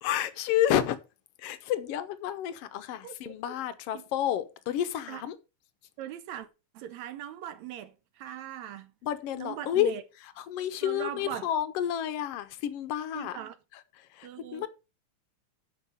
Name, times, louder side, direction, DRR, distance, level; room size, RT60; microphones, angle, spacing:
voice 1, 0.0-1.0 1.4-5.4 9.0-9.9 10.4-13.4 14.0-14.7, left 11 dB, 80° left, 1.3 m, -30 dB
voice 2, 6.0-6.5 6.7-8.9 9.4-10.0 10.8-11.5 13.1-13.5 14.2-14.7, right 11 dB, 75° right, 1.8 m, -40 dB
9.6 x 5.4 x 5.5 m
omnidirectional pair, 3.5 m